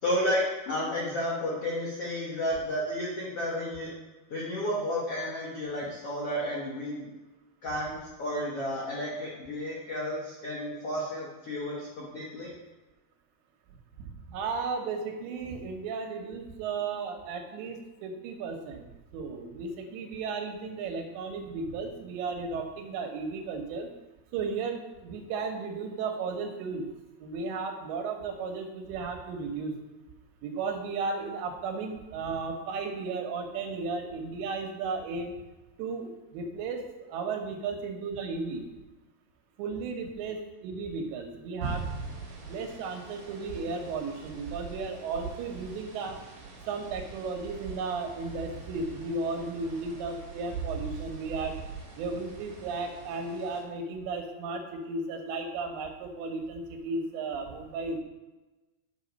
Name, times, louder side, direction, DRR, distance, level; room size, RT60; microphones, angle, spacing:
voice 1, 0.0-3.9 4.3-7.1 7.6-12.5, equal, 75° left, -4 dB, 1.3 m, -32 dB
voice 2, 14.0-18.9 19.1-23.9 24.3-26.9 27.2-29.8 30.4-35.3 35.8-36.8 37.1-38.7 39.6-41.9 42.5-46.2 46.7-51.6 52.0-58.0, right 4 dB, 85° right, 4 dB, 3.4 m, -34 dB
sound 1, 41.6-53.6, right 4 dB, 50° right, 2.9 m, -41 dB
9.7 x 5.9 x 5.2 m, 1.1 s
omnidirectional pair, 5.0 m